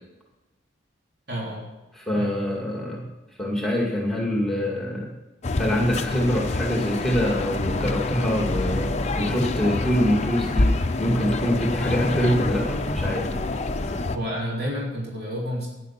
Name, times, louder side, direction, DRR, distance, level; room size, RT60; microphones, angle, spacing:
voice 1, 1.3-1.7 2.1-2.4 14.1-15.7, equal, 55° right, -3 dB, 3.5 m, -30 dB
voice 2, 1.9-3.1 3.4-5.1 5.6-10.7 11.0-13.4 13.8-13.9, equal, ahead, -2 dB, 2.2 m, -25 dB
sound 1, 5.4-14.2, left 2 dB, 35° left, 0.7 m, -26 dB
11.0 x 10.0 x 5.8 m, 1.0 s
head